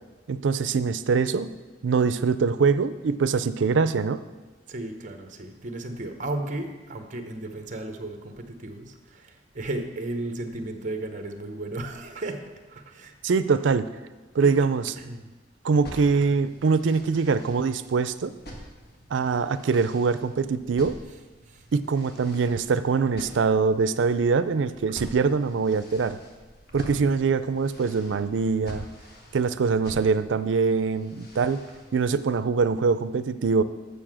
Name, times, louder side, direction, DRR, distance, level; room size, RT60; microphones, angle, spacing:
voice 1, 0.3-1.5 1.8-4.2 13.2-13.9 14.3-14.9 15.6-18.3 19.1-21.0 21.7-26.2 26.7-28.9 29.3-31.6 31.9-33.6, right 5 dB, 80° right, 13 dB, 0.4 m, -23 dB
voice 2, 4.7-12.4 12.7-13.5 14.4-14.6 15.0-15.3 21.1-21.6, right 2 dB, 45° right, 6 dB, 0.9 m, -35 dB
sound 1, 15.7-32.0, equal, 55° left, 1.6 m, -46 dB
7.0 x 6.6 x 7.4 m, 1.2 s
head